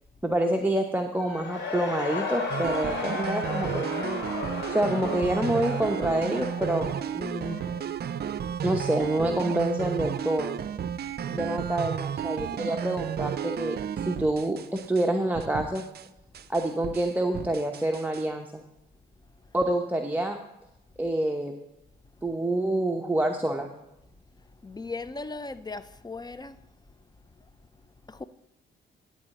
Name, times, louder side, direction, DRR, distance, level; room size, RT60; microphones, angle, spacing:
voice 1, 0.2-4.2 4.7-6.9 7.1-7.6 8.6-10.6 11.3-15.8 16.5-18.6 19.5-20.4 21.0-21.5 22.2-23.7, right 1 dB, 10° right, 0.9 m, -27 dB
Cheering / Crowd, 1.1-7.9, left 4 dB, 60° left, 3.0 m, -34 dB
sound 1, 2.5-15.1 15.4-16.1 16.3-18.2, right 8 dB, 50° right, 0.5 m, -33 dB
voice 2, 24.6-26.6 28.1-28.2, left 3 dB, 20° left, 0.6 m, -37 dB
11.5 x 4.0 x 7.8 m
supercardioid pair, 60°, 21 cm